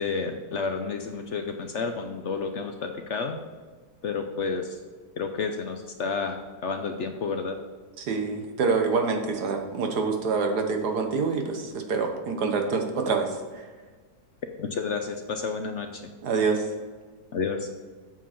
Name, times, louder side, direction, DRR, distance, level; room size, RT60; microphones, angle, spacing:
voice 1, 0.0-3.4 4.0-4.8 5.2-7.6 14.6-16.0 17.3-17.7, left 4 dB, 60° left, 5 dB, 0.8 m, -30 dB
voice 2, 8.0-13.6 16.2-16.7, right 4 dB, 75° right, 4 dB, 1.7 m, -26 dB
8.4 x 7.4 x 4.4 m, 1.4 s
omnidirectional pair, 1.7 m